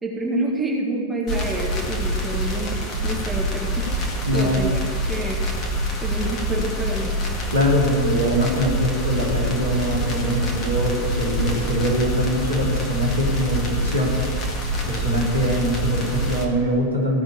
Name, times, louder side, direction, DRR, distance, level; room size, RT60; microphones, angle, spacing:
voice 1, 0.0-2.8 3.0-4.8 5.1-5.4 6.0-7.2, right 2 dB, 10° right, -2 dB, 2.0 m, -28 dB
sound 1, 1.3-16.4, equal, 30° left, 1.8 m, -26 dB
voice 2, 4.3-4.6 7.5-14.1 14.9-17.2, equal, 85° right, -5 dB, 3.1 m, -23 dB
15.5 x 6.0 x 7.3 m, 2.2 s
figure-of-eight pair, 90°, 0 cm